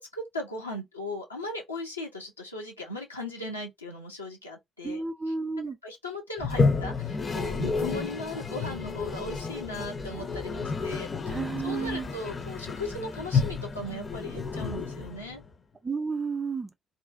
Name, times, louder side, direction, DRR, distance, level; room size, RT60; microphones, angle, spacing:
voice 1, 0.0-5.3 5.8-15.4, left 1 dB, 90° left, 0.5 m, -38 dB
voice 2, 4.8-5.8 11.3-12.1 15.8-16.7, right 4 dB, 20° right, 0.4 m, -31 dB
Toilet flush, 6.4-15.5, left 4 dB, 35° left, 0.5 m, -30 dB
2.5 x 2.1 x 2.4 m
figure-of-eight pair, 45°, 0 cm